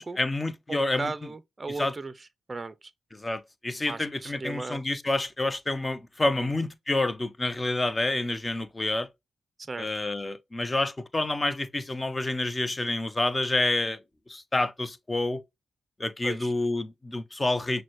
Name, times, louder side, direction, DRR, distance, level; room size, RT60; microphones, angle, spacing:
voice 1, 0.0-1.1 1.8-1.9 3.1-9.1 9.8-14.0 14.3-15.4 16.0-17.8, left 2 dB, 25° left, 0.6 m, -28 dB
voice 2, 0.7-2.9 3.9-4.8 6.4-6.5 9.6-9.9 16.2-16.5, right 3 dB, 35° right, 0.4 m, -37 dB
6.1 x 2.2 x 3.0 m
cardioid pair, 55°, 0 cm